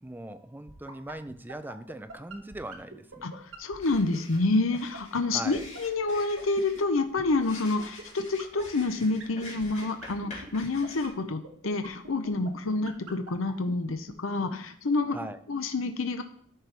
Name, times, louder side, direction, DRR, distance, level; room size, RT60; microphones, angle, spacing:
voice 1, 0.0-3.3 5.3-5.6 15.1-15.4, right 1 dB, 10° right, 11 dB, 0.5 m, -40 dB
sound 1, 0.7-14.1, right 3 dB, 80° right, 1.2 m, -43 dB
voice 2, 3.2-15.2 15.5-16.2, left 3 dB, 85° left, 7 dB, 0.7 m, -28 dB
sound 2, 3.8-11.1, left 2 dB, 35° left, 2.5 m, -47 dB
13.0 x 4.6 x 3.4 m, 0.62 s
head